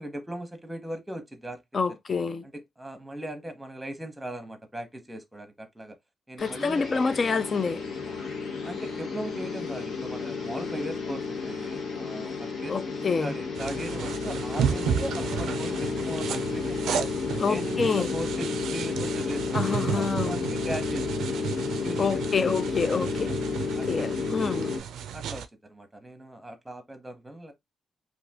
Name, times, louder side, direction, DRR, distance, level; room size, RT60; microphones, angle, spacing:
voice 1, 0.0-1.6 2.5-6.0 6.3-7.0 8.6-17.1 17.5-22.6 22.8-23.1 23.8-24.1 25.1-27.5, right 1 dB, 10° right, 0.9 m, -39 dB
voice 2, 1.7-2.5 6.4-7.8 12.7-13.3 17.4-18.1 19.5-20.4 22.0-23.3 23.9-24.8, left 5 dB, 45° left, 0.4 m, -27 dB
sound 1, 6.4-24.8, left 5 dB, 70° left, 1.1 m, -32 dB
sound 2, 13.5-25.5, right 8 dB, 85° right, 0.4 m, -33 dB
2.4 x 2.4 x 3.5 m
cardioid pair, 70°, 0 cm